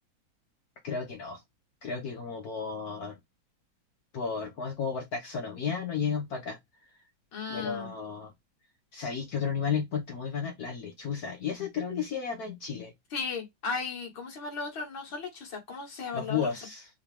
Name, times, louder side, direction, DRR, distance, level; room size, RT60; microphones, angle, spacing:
voice 1, 0.8-1.4 1.8-3.2 4.1-6.6 7.5-8.3 8.9-12.9 16.1-16.9, left 6 dB, 55° left, 1.3 m, -33 dB
voice 2, 7.3-7.9 13.1-16.5, left 4 dB, 85° left, 2.7 m, -36 dB
4.9 x 2.9 x 3.4 m
omnidirectional pair, 2.1 m